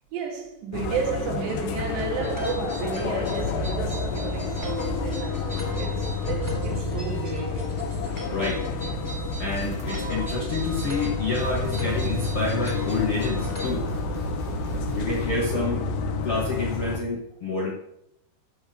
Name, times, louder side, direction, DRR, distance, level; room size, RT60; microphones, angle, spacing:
voice 1, 0.1-7.8, right 6 dB, 75° right, 4.1 m, -33 dB
sound 1, 0.7-17.0, left 4 dB, 80° left, 3.1 m, -30 dB
sound 2, 2.2-13.7, left 1 dB, 5° left, 2.5 m, -36 dB
voice 2, 8.3-8.6 9.4-13.8 14.9-17.7, left 3 dB, 60° left, 1.5 m, -28 dB
sound 3, 9.6-10.3 11.0-11.1 11.4-15.6, right 6 dB, 30° right, 0.8 m, -36 dB
13.5 x 5.3 x 7.8 m
omnidirectional pair, 5.0 m